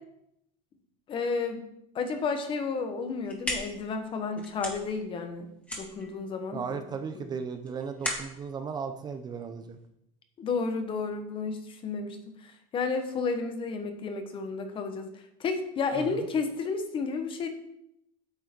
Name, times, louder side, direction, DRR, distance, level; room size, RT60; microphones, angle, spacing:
voice 1, 1.1-1.6 1.9-5.5 5.8-6.8 7.1-7.2 10.4-15.1 15.4-17.5, left 4 dB, 30° left, 7 dB, 1.2 m, -32 dB
sound 1, 3.0-9.9, left 1 dB, 5° left, 1.8 m, -39 dB
voice 2, 6.5-9.8 15.9-16.3, right 6 dB, 25° right, 7 dB, 0.6 m, -36 dB
8.9 x 6.3 x 4.5 m, 0.78 s
supercardioid pair, 140°, 17 cm